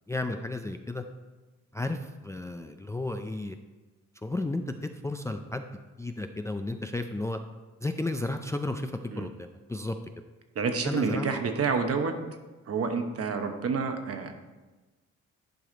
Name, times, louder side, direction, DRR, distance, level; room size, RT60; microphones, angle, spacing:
voice 1, 0.1-1.0 1.7-3.6 4.2-5.7 6.0-7.4 7.8-10.0 10.8-11.3, left 2 dB, 10° left, 6 dB, 0.4 m, -33 dB
voice 2, 10.5-12.1 12.7-14.3, right 5 dB, 50° right, 6 dB, 1.1 m, -28 dB
11.0 x 4.8 x 3.9 m, 1.2 s
cardioid pair, 90°, 30 cm